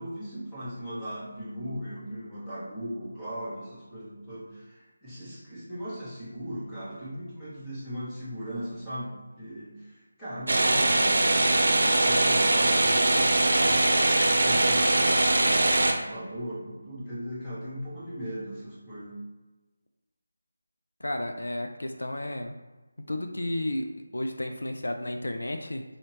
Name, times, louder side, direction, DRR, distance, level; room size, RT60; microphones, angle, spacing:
voice 1, 0.0-19.2, equal, 5° left, -12 dB, 1.2 m, -38 dB
sound 1, 10.5-15.9, right 2 dB, 65° right, 0.6 m, -22 dB
voice 2, 21.0-22.5 23.1-25.8, left 1 dB, 75° left, 5 dB, 0.4 m, -32 dB
4.2 x 2.8 x 3.1 m, 1.2 s
figure-of-eight pair, 160°, 0 cm